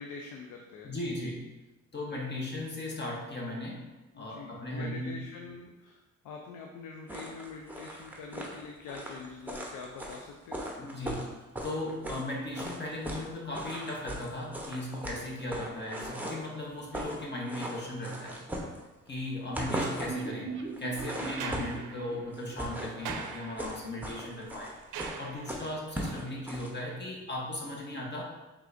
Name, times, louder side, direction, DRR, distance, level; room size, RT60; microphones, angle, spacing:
voice 1, 0.0-0.9 4.1-10.6, left 5 dB, 90° left, 2 dB, 0.5 m, -44 dB
voice 2, 0.8-1.5 1.9-3.9 4.1-5.2 10.8-11.3 11.6-18.4 19.1-24.8 25.2-28.2, left 1 dB, 35° left, -2 dB, 1.0 m, -37 dB
sound 1, 7.1-12.3 12.5-13.3 13.5-16.5 16.8-17.2 17.4-19.1 19.4-20.2 20.7-21.9 22.3-26.7, equal, 5° right, 0.7 m, -38 dB
sound 2, 20.1-23.9 24.2-24.3 24.6-24.7, right 4 dB, 40° right, 0.7 m, -41 dB
sound 3, 21.2-25.9 27.4-27.5, right 7 dB, 85° right, 0.5 m, -43 dB
4.9 x 3.4 x 2.5 m, 1.1 s
cardioid pair, 90°, 30 cm